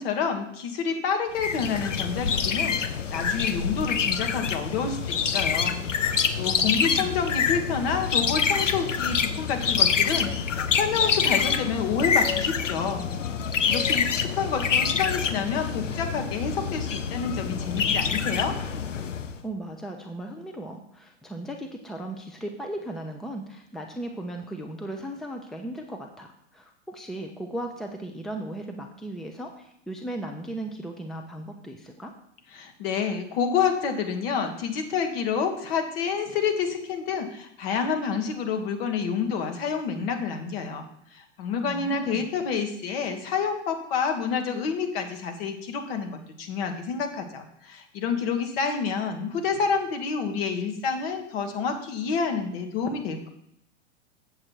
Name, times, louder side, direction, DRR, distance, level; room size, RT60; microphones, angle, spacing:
voice 1, 0.0-5.8 6.1-13.0 13.7-18.5 32.5-40.9 41.1-53.3, left 6 dB, 50° left, 5 dB, 1.6 m, -28 dB
sound 1, 1.4-19.4, left 6 dB, 80° left, 0.7 m, -26 dB
voice 2, 6.5-7.2 19.4-32.1 41.6-42.3, right 1 dB, ahead, 3 dB, 0.7 m, -37 dB
7.5 x 7.5 x 4.7 m, 0.72 s
figure-of-eight pair, 95°, 37 cm